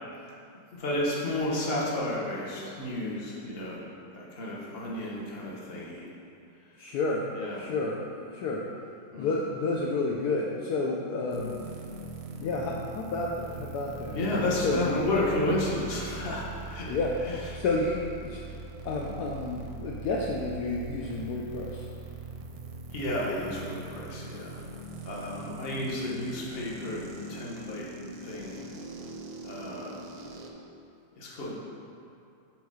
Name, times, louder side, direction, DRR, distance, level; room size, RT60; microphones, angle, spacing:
voice 1, 0.7-3.8 4.1-6.1 7.4-7.7 9.1-9.3 14.1-16.9 17.2-17.4 22.9-24.6 25.0-27.0 27.3-28.6 29.4-30.1 31.2-31.5, left 1 dB, 35° left, -4 dB, 1.0 m, -32 dB
voice 2, 6.8-7.3 7.6-8.6 9.2-11.6 12.4-15.0 16.9-17.2 17.5-18.4 18.8-21.9, left 3 dB, 75° left, -2 dB, 0.9 m, -30 dB
sound 1, 11.3-30.5, right 3 dB, 65° right, 0.9 m, -42 dB
7.4 x 3.8 x 5.5 m, 2.6 s
omnidirectional pair, 2.3 m